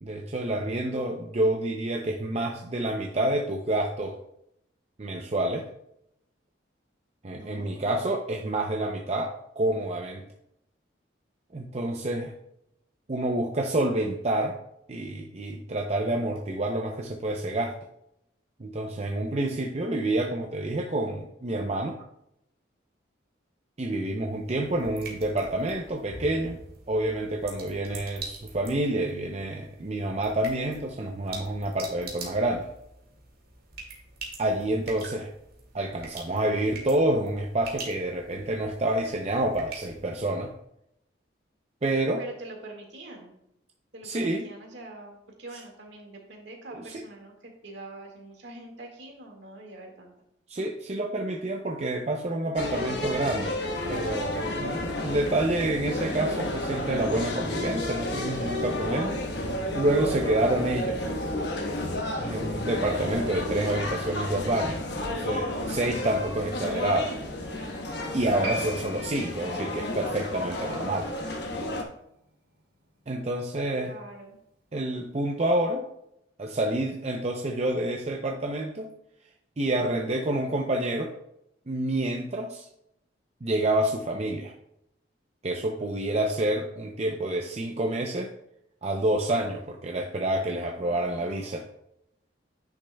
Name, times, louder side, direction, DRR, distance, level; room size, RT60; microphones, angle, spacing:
voice 1, 0.0-4.2 5.0-5.7 7.2-10.2 11.5-12.3 13.1-14.6 14.9-17.7 18.6-22.0 23.8-26.6 26.9-32.7 34.4-35.3 35.7-40.5 41.8-42.2 44.0-44.4 46.7-46.8 50.5-53.5 53.9-59.1 59.7-61.1 62.2-64.8 65.1-67.1 68.1-71.1 73.1-73.9 74.7-75.8 76.4-78.9 79.6-81.1 81.7-82.7 83.4-84.5 85.4-88.3 88.8-91.7, right 1 dB, 35° right, 2 dB, 0.5 m, -28 dB
voice 2, 7.3-8.1 42.2-43.3 43.9-50.1 73.8-74.4 90.7-91.6, right 2 dB, 65° right, 1 dB, 1.8 m, -44 dB
sound 1, 24.1-40.5, right 3 dB, 50° right, 2.0 m, -44 dB
sound 2, 52.6-71.8, left 1 dB, 60° left, 1.2 m, -31 dB
Piano, 68.4-75.4 75.6-75.7, right 1 dB, 80° right, 2.8 m, -43 dB
10.0 x 6.3 x 2.3 m, 0.77 s
head